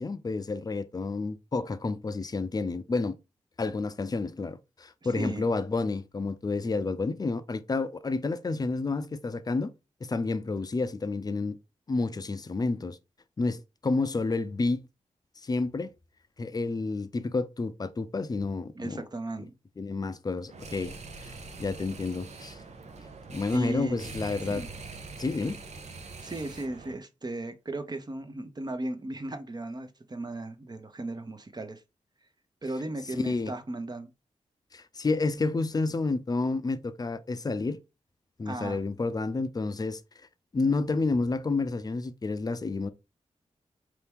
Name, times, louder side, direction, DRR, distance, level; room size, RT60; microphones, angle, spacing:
voice 1, 0.0-3.1 3.6-9.7 10.0-11.6 11.9-13.0 13.4-14.8 15.4-15.9 16.4-19.0 19.8-21.3 21.6-22.6 23.3-24.6 25.2-25.6 33.2-33.5 34.7-37.8 38.4-40.0 40.5-42.9, left 3 dB, 30° left, 0.5 m, -30 dB
voice 2, 18.7-19.5 23.5-24.1 24.5-24.7 26.2-31.8 32.6-34.1 38.5-38.8, right 2 dB, 35° right, 0.8 m, -35 dB
sound 1, 20.5-27.0, right 3 dB, 65° right, 0.7 m, -43 dB
4.5 x 2.9 x 3.4 m
cardioid pair, 65°, 12 cm